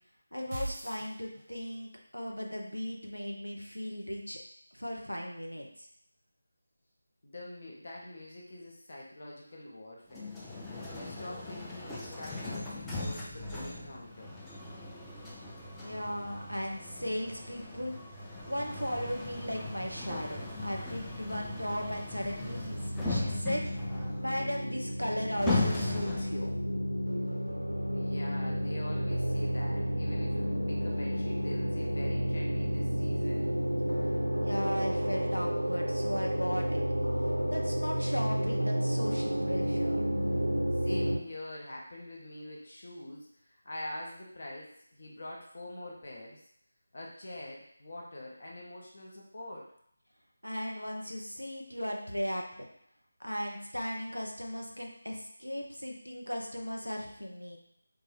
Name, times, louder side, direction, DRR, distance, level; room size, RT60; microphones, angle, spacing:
voice 1, 0.3-4.4 4.7-5.7 15.8-18.0 18.5-22.8 23.1-23.7 24.2-26.6 34.4-36.8 37.5-40.0 50.4-52.7 53.2-57.6, equal, 85° left, 0 dB, 0.7 m, -36 dB
sound 1, 0.5-1.8, right 1 dB, 25° right, 0.7 m, -39 dB
voice 2, 7.2-10.4 10.9-14.4 27.9-33.5 40.7-46.4 46.9-49.7, left 1 dB, 45° left, -2 dB, 0.7 m, -45 dB
sound 2, 10.1-26.5, left 2 dB, 5° left, 0.4 m, -38 dB
sound 3, 22.4-41.2, equal, 80° right, 0.4 m, -31 dB
3.3 x 2.6 x 3.5 m, 0.68 s
figure-of-eight pair, 160°, 0 cm